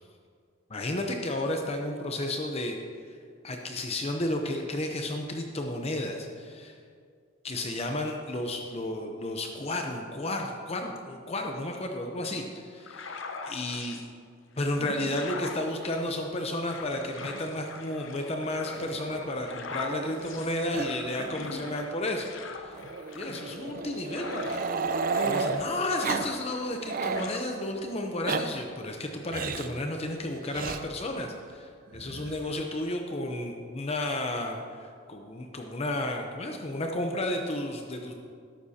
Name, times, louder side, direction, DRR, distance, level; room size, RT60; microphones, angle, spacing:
voice 1, 0.7-2.8 3.4-6.8 7.4-13.2 13.5-14.0 14.6-22.3 22.6-22.8 23.1-24.6 25.2-38.2, left 1 dB, 30° left, 3 dB, 0.7 m, -32 dB
sound 1, 12.8-14.1 14.6-24.8 25.1-26.8 27.1-27.4, left 3 dB, 70° left, 0.9 m, -42 dB
Growling, 18.6-20.4 20.7-20.9 21.1-21.3 21.6-21.7 22.8-25.6 26.0-26.3 26.6-27.3 28.0-28.4 29.3-29.7 30.5-30.8 31.9-32.6, right 4 dB, 45° right, 0.5 m, -33 dB
13.5 x 11.5 x 2.8 m, 2.2 s
head